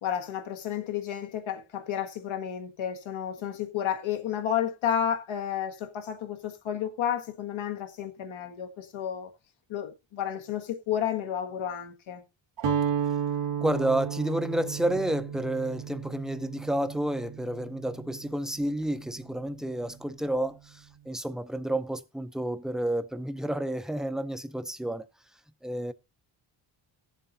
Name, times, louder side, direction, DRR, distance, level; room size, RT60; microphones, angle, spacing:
voice 1, 0.0-9.3 9.7-12.2, left 9 dB, 75° left, 1.7 m, -31 dB
Guitar, 12.6-18.6, right 8 dB, 70° right, 1.6 m, -33 dB
voice 2, 13.6-25.1 25.6-25.9, right 1 dB, ahead, 0.6 m, -30 dB
18.0 x 7.5 x 2.7 m
cardioid pair, 135°, 47 cm